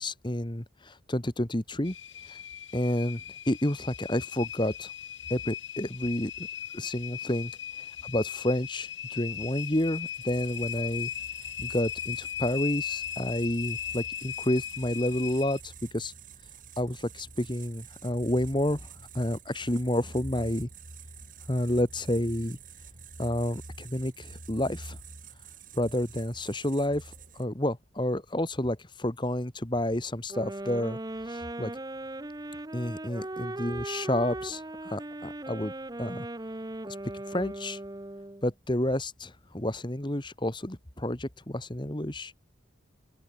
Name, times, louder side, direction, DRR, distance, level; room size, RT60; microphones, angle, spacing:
voice 1, 0.0-1.9 2.3-2.4 2.7-3.2 3.5-4.9 5.3-6.5 6.7-7.5 8.0-11.1 11.6-16.1 16.8-18.9 19.1-20.7 21.5-22.6 23.2-25.0 25.7-31.0 31.3-31.7 32.7-35.7 36.0-36.3 37.3-37.8 38.4-42.3, left 1 dB, 25° left, 1.6 m, -30 dB
sound 1, 1.8-15.6, left 10 dB, 75° left, 3.7 m, -38 dB
sound 2, 9.3-27.6, right 4 dB, 40° right, 6.5 m, -48 dB
sound 3, 30.3-38.5, right 1 dB, 20° right, 0.8 m, -38 dB
open air
head